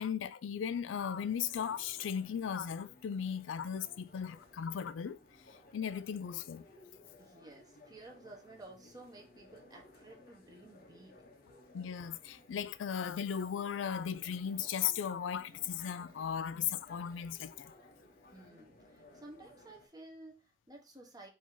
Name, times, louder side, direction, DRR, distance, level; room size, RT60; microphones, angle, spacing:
voice 1, 0.0-5.2 5.7-6.6 11.7-17.7, left 8 dB, 90° left, 0.4 m, -37 dB
sound 1, 0.9-19.9, left 2 dB, 55° left, 0.8 m, -59 dB
voice 2, 7.2-11.2 18.3-21.3, right 2 dB, 20° right, 1.0 m, -54 dB
4.9 x 2.8 x 3.7 m
head